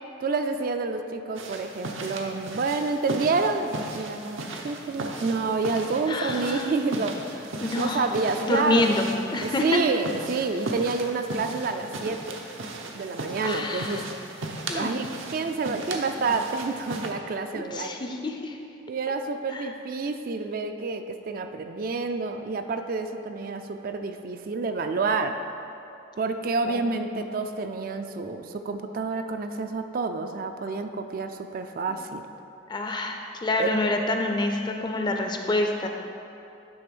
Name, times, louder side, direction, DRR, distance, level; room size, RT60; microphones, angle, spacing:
voice 1, 0.2-9.0 9.4-12.4 12.9-14.1 14.7-15.1 15.3-18.0 18.9-25.4 26.2-32.2 33.6-33.8, right 4 dB, 45° right, 7 dB, 0.3 m, -28 dB
sound 1, 1.3-17.1, right 2 dB, 90° right, 0.8 m, -37 dB
voice 2, 6.1-6.8 7.6-8.1 8.4-9.0 9.3-9.8 13.4-14.0 14.7-14.9 17.5-18.6 19.5-19.7 26.7-27.2 32.7-35.9, left 2 dB, 25° left, 3 dB, 0.5 m, -27 dB
9.8 x 3.4 x 6.1 m, 2.7 s
head